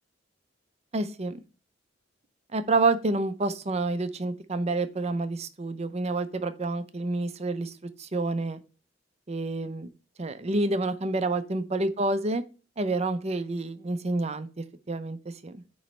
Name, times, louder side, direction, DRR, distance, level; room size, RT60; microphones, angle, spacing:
voice 1, 0.9-1.4 2.5-7.7 8.0-8.6 9.3-9.9 10.2-12.4 12.8-15.2 15.4-15.6, right 2 dB, 35° right, 11 dB, 0.6 m, -28 dB
9.2 x 3.1 x 4.3 m, 0.36 s
head